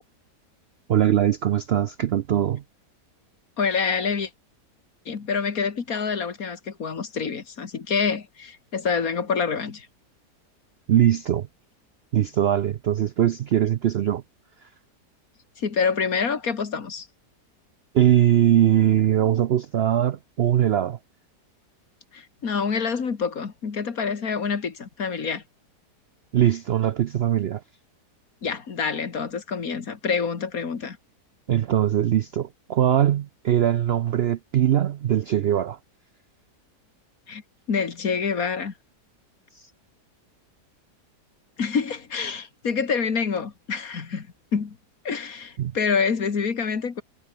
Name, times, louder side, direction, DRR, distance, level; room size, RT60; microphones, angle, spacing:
voice 1, 0.9-2.6 10.9-11.5 12.1-14.2 17.9-21.0 26.3-27.6 31.5-35.8 39.5-39.7 45.6-45.7, right 11 dB, 85° right, 0.5 m, -21 dB
voice 2, 3.6-4.3 5.1-9.9 15.6-17.1 22.1-25.4 28.4-31.0 37.3-37.4 37.7-38.7 41.6-44.3 44.5-44.8 45.0-47.0, left 5 dB, 60° left, 2.4 m, -27 dB
omnidirectional pair, 1.8 m